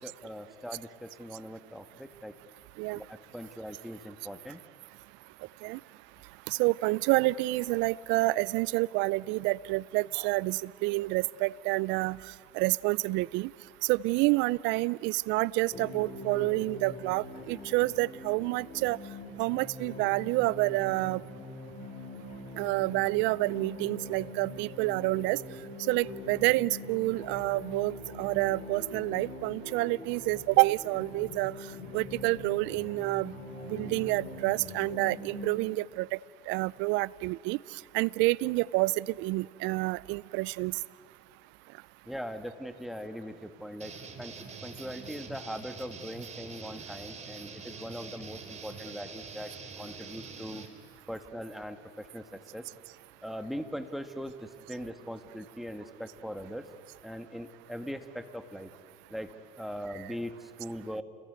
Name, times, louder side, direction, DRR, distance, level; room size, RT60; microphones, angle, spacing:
voice 1, 0.0-2.3 2.9-4.6 42.1-43.9 44.2-44.3 44.6-49.5 49.8-50.6 51.1-52.7 53.2-56.6 57.0-58.7 59.1-61.0, equal, ahead, 8 dB, 1.8 m, -40 dB
voice 2, 6.5-12.2 12.5-13.5 13.8-19.0 19.4-21.2 22.6-25.4 25.9-31.5 31.9-33.3 33.7-36.1 36.5-37.6 37.9-40.8, right 21 dB, 65° right, 23 dB, 0.6 m, -28 dB
sound 1, 15.7-35.5, left 1 dB, 40° left, 5.2 m, -43 dB
sound 2, 43.8-50.7, right 5 dB, 35° right, 3.4 m, -45 dB
29.5 x 21.0 x 9.4 m, 2.3 s
supercardioid pair, 95°, 20 cm